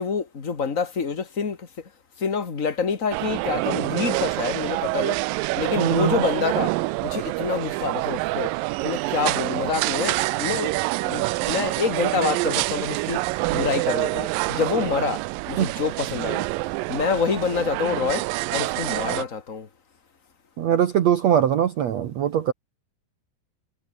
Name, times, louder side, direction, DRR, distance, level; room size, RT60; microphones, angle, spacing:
voice 1, 0.0-1.7 2.2-5.2 5.6-6.8 7.0-8.5 8.8-10.7 11.0-13.2 13.5-16.5 16.9-19.7, left 5 dB, 40° left, 1.1 m, -27 dB
sound 1, 3.1-19.2, right 21 dB, 85° right, 2.0 m, -26 dB
voice 2, 5.8-6.2 15.6-15.7 20.6-22.5, right 10 dB, 65° right, 1.7 m, -21 dB
omnidirectional pair, 4.6 m